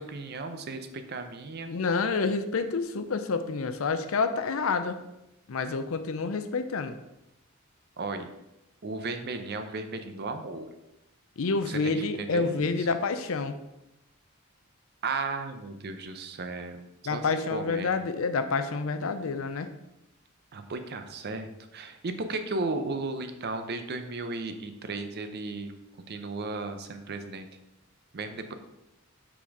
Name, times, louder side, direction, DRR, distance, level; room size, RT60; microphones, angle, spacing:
voice 1, 0.0-1.7 8.0-8.3 8.8-10.7 11.6-12.7 15.0-16.9 17.1-18.0 20.5-25.7 26.1-27.5 28.1-28.5, right 3 dB, 50° right, 8 dB, 0.6 m, -35 dB
voice 2, 1.7-5.0 5.5-7.0 11.4-13.6 17.1-19.7, left 4 dB, 75° left, 9 dB, 0.5 m, -28 dB
6.0 x 4.2 x 4.7 m, 0.90 s
head